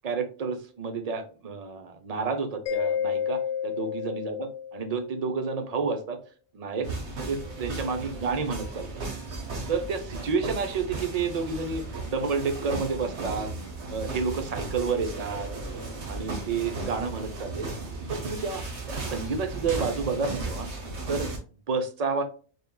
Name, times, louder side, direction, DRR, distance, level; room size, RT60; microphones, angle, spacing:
voice 1, 0.0-6.2 6.5-6.9 7.3-8.9 9.7-13.5 13.9-15.5 16.1-17.7 18.1-20.7 21.1-21.3 21.7-22.2, right 5 dB, 45° right, 7 dB, 0.6 m, -30 dB
Mallet percussion, 2.7-5.2, left 8 dB, 80° left, 0.9 m, -30 dB
sound 1, 6.8-21.4, right 3 dB, 85° right, 1.3 m, -35 dB
4.1 x 3.5 x 2.3 m, 0.39 s
omnidirectional pair, 1.1 m